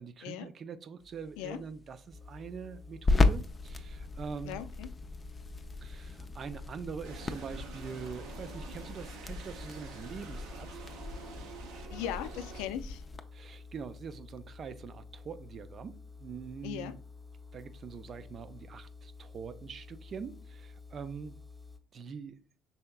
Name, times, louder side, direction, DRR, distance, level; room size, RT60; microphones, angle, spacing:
voice 1, 0.0-4.6 5.8-10.8 13.3-17.0 17.5-21.4 21.9-22.4, right 6 dB, 50° right, 0.4 m, -44 dB
sound 1, 1.0-13.2, left 3 dB, 30° left, 0.5 m, -35 dB
sound 2, 2.1-21.8, left 4 dB, ahead, 0.8 m, -51 dB
voice 2, 4.5-4.9 11.9-13.0 16.6-16.9, left 11 dB, 85° left, 0.4 m, -38 dB
sound 3, 7.0-12.7, right 5 dB, 85° right, 0.7 m, -48 dB
5.5 x 3.4 x 2.3 m
supercardioid pair, 75°, 0 cm